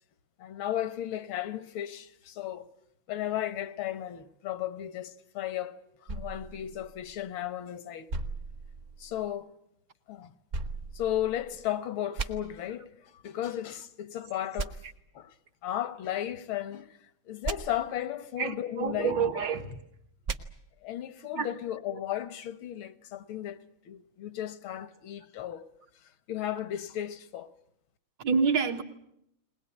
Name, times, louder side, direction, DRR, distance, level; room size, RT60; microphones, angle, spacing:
voice 1, 0.4-2.7 3.1-5.8 6.0-8.1 9.0-9.5 10.1-10.3 10.9-14.8 15.2-15.3 15.6-19.2 20.8-25.7 26.3-27.5, left 11 dB, 80° left, 1.9 m, -35 dB
sound 1, 6.1-7.5 8.1-9.3 10.5-11.7 12.2-12.3 14.6-14.7 17.4-17.6 20.3-20.4, right 4 dB, 45° right, 1.3 m, -36 dB
voice 2, 18.4-19.8 21.4-21.5 28.2-28.8, right 5 dB, 65° right, 2.1 m, -28 dB
21.0 x 20.5 x 9.8 m
omnidirectional pair, 2.2 m